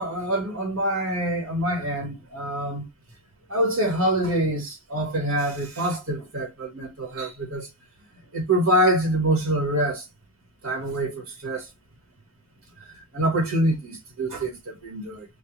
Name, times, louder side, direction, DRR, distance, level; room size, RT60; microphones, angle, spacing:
voice 1, 0.0-2.9 3.5-7.7 8.3-10.0 10.6-11.7 13.1-15.3, right 1 dB, 75° right, 2.1 m, -25 dB
5.3 x 2.4 x 2.8 m
head